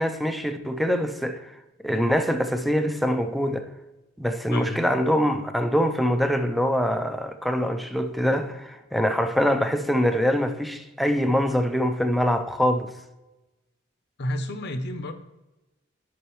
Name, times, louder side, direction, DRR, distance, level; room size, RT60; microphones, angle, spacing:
voice 1, 0.0-1.5 1.8-3.7 4.2-12.9, equal, ahead, 0.5 m, -24 dB
voice 2, 14.2-15.1, left 1 dB, 55° left, 0.7 m, -30 dB
9.7 x 5.5 x 3.1 m
head